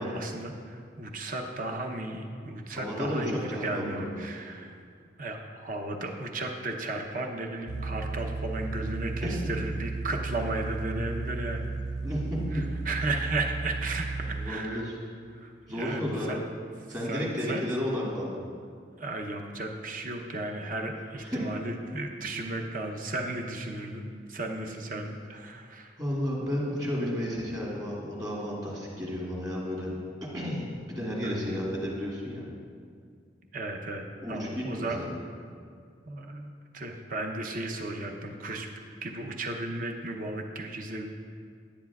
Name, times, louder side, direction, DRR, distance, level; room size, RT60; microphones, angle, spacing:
voice 1, 0.0-4.8 5.2-11.7 12.5-14.9 15.3-16.4 17.0-17.6 19.0-25.9 31.2-31.6 33.5-35.0 36.1-38.7 39.0-41.0, right 2 dB, 50° right, 3 dB, 0.8 m, -35 dB
voice 2, 2.8-4.2 9.2-9.5 12.0-12.6 14.3-14.9 15.7-16.4 16.9-18.4 21.2-21.5 26.0-30.0 30.3-30.6 30.9-32.4 34.2-35.2, equal, 20° right, -5 dB, 1.8 m, -32 dB
sound 1, 7.7-14.5, right 3 dB, 75° right, 0.4 m, -34 dB
10.0 x 10.0 x 2.4 m, 2.1 s
head